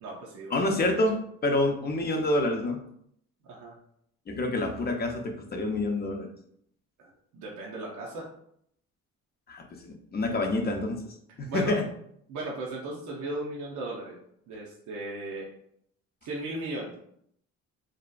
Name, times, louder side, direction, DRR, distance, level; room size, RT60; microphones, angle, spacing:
voice 1, 0.0-1.0 3.4-3.8 7.0-8.3 11.3-11.8 12.3-14.2 14.5-15.6 16.2-16.9, right 2 dB, 80° right, -3 dB, 0.6 m, -37 dB
voice 2, 0.5-2.8 4.3-6.3 9.5-11.1 11.4-11.9, left 2 dB, 35° left, 3 dB, 0.5 m, -28 dB
2.7 x 2.4 x 2.2 m, 0.69 s
cardioid pair, 90°, 30 cm